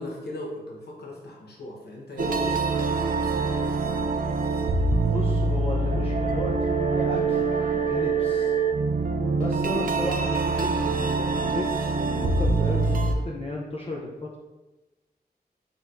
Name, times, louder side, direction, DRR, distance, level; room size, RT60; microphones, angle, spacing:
voice 1, 0.0-3.7, left 1 dB, 75° left, -2 dB, 1.0 m, -38 dB
sound 1, 2.2-13.1, right 3 dB, 60° right, 0.4 m, -24 dB
voice 2, 5.0-7.5 7.9-8.6 9.4-14.4, left 1 dB, 35° left, -4 dB, 0.5 m, -34 dB
4.2 x 4.0 x 2.5 m, 1.1 s
wide cardioid pair, 100°, 17 cm